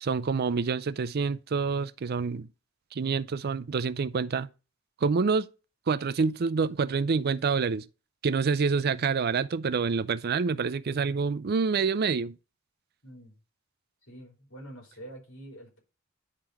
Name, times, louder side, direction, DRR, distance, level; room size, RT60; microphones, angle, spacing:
voice 1, 0.0-2.5 2.9-4.5 5.0-5.5 5.9-7.8 8.2-12.4, right 5 dB, 50° right, 0.4 m, -27 dB
voice 2, 13.0-13.3 14.0-15.8, right 1 dB, 80° left, 3.7 m, -46 dB
10.0 x 3.7 x 4.6 m
head